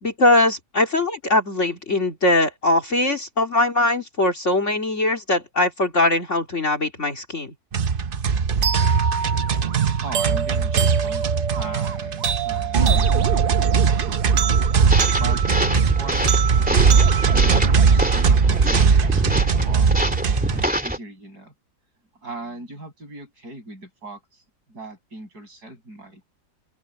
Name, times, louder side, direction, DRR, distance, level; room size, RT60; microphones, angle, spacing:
voice 1, 0.0-7.5, left 2 dB, 45° left, 3.0 m, -21 dB
sound 1, 7.7-20.6, right 5 dB, 45° right, 0.8 m, -20 dB
sound 2, 8.6-18.6, right 8 dB, 85° right, 1.8 m, -28 dB
voice 2, 9.4-14.5 15.2-21.5 22.2-24.4 24.7-26.2, right 2 dB, 70° right, 8.3 m, -39 dB
sound 3, 14.9-21.0, equal, 5° right, 2.2 m, -26 dB
open air
omnidirectional pair, 1.8 m